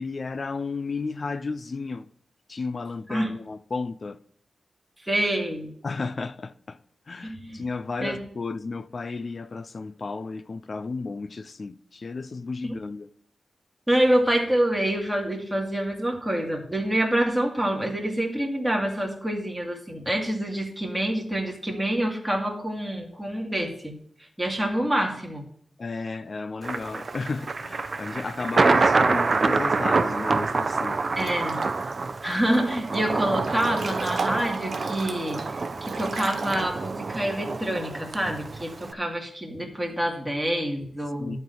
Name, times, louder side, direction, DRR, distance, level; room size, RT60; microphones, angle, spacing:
voice 1, 0.0-2.1 2.5-4.2 5.8-6.8 7.1-13.1 25.8-31.0 41.2-41.4, left 4 dB, 45° left, 0.4 m, -33 dB
voice 2, 5.0-5.7 7.3-7.6 8.0-8.2 12.6-12.7 13.9-23.9 24.2-25.5 31.2-31.6 32.2-41.4, right 1 dB, 5° right, 2.4 m, -27 dB
Thunder, 26.6-38.9, right 3 dB, 45° right, 0.7 m, -26 dB
Breathing / Bathtub (filling or washing) / Splash splatter, 31.2-31.9 32.3-33.0 33.3-36.6, right 4 dB, 70° right, 1.5 m, -36 dB
11.5 x 4.5 x 7.8 m
wide cardioid pair, 95°, 0 cm